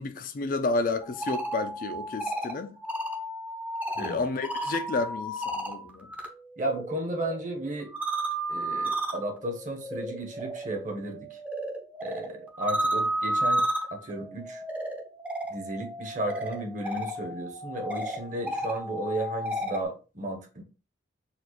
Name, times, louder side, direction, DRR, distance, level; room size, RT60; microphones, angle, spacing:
voice 1, 0.0-2.7 4.0-6.1, left 3 dB, 45° left, 0.4 m, -31 dB
sound 1, 1.0-6.3 6.6-19.9, right 1 dB, 10° right, 0.5 m, -33 dB
voice 2, 6.6-7.9 8.5-11.4 12.0-14.6 15.5-20.6, right 1 dB, 40° right, 0.9 m, -34 dB
4.1 x 2.4 x 3.0 m
head